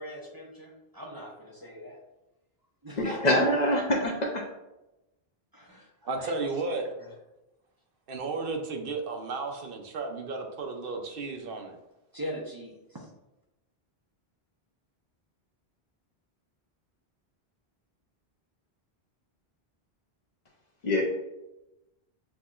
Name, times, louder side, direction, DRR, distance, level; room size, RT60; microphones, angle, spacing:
voice 1, 0.0-2.0 2.8-3.2 5.5-7.2 12.1-13.1, equal, 25° right, -1 dB, 0.5 m, -41 dB
voice 2, 3.0-4.4 20.8-21.0, left 1 dB, 50° left, 0 dB, 0.7 m, -25 dB
voice 3, 6.0-6.9 8.1-11.8, right 3 dB, 65° right, 3 dB, 0.8 m, -33 dB
7.0 x 2.8 x 2.4 m, 0.96 s
omnidirectional pair, 1.1 m